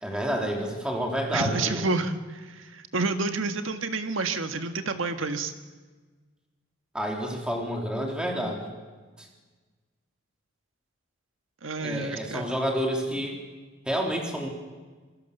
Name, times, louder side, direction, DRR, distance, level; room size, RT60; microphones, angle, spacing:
voice 1, 0.0-1.8 6.9-8.7 9.2-9.3 11.8-13.4 13.9-14.5, equal, 5° right, 0 dB, 3.6 m, -29 dB
voice 2, 1.3-5.5 11.6-12.5, right 3 dB, 75° right, 7 dB, 1.7 m, -29 dB
26.0 x 21.5 x 6.8 m, 1.3 s
head